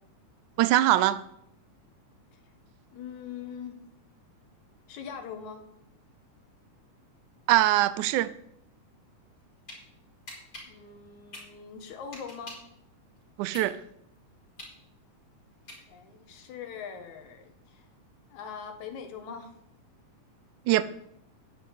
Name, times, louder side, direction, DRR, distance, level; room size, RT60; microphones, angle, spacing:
voice 1, 0.6-1.2 7.5-8.3 13.4-13.8 20.7-20.8, right 14 dB, 80° right, 2.0 m, -22 dB
voice 2, 2.9-3.8 4.9-5.6 10.7-12.6 15.9-17.9 18.3-19.5, left 7 dB, 70° left, 2.7 m, -42 dB
sound 1, 9.4-9.8 10.3-12.7 13.2-16.2, left 2 dB, 30° left, 4.2 m, -45 dB
10.0 x 6.3 x 8.7 m
omnidirectional pair, 3.6 m